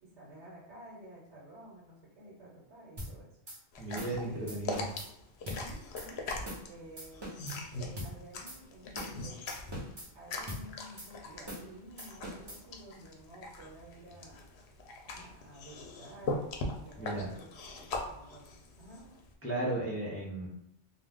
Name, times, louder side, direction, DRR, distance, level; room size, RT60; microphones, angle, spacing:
voice 1, 0.0-3.3 3.9-4.8 5.4-6.2 6.6-7.4 7.7-9.4 10.1-14.4 15.0-16.5 16.8-17.7 18.1-19.1, right 1 dB, 75° right, -5 dB, 1.2 m, -51 dB
sound 1, 3.0-3.1 3.5-3.6 4.0-4.2 4.5-5.1 5.5-5.6 6.0-6.1 6.5-6.7 7.0-7.6 8.0-8.1 8.5-8.6 9.0-9.2 9.5-10.1 10.5-10.6 11.0-11.1 11.5-11.7 12.0-12.6, equal, 25° right, 0.7 m, -42 dB
sound 2, 3.7-19.3, left 2 dB, 70° left, 0.8 m, -41 dB
voice 2, 3.8-4.9 17.0-17.3 19.4-20.5, right 1 dB, 20° left, -5 dB, 0.4 m, -35 dB
2.3 x 2.3 x 3.4 m, 0.83 s
omnidirectional pair, 1.2 m